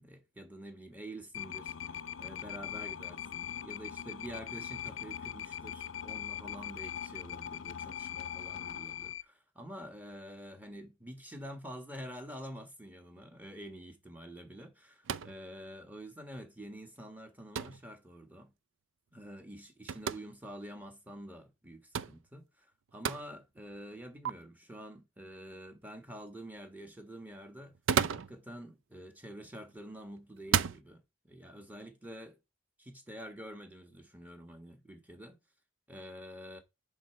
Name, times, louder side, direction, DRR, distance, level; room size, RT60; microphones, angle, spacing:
voice 1, 0.0-18.5 19.1-27.8 28.1-32.4 32.8-35.4 35.9-36.6, equal, 10° right, 1.6 m, -47 dB
sound 1, 1.3-9.2, left 9 dB, 80° left, 0.6 m, -41 dB
sound 2, 15.0-15.4 17.6-17.8 19.9-20.2 21.9-22.2 23.0-23.2 24.2-24.3 27.6-28.4 29.5-29.8 30.4-30.8, right 7 dB, 80° right, 0.4 m, -31 dB
10.0 x 4.9 x 4.5 m
head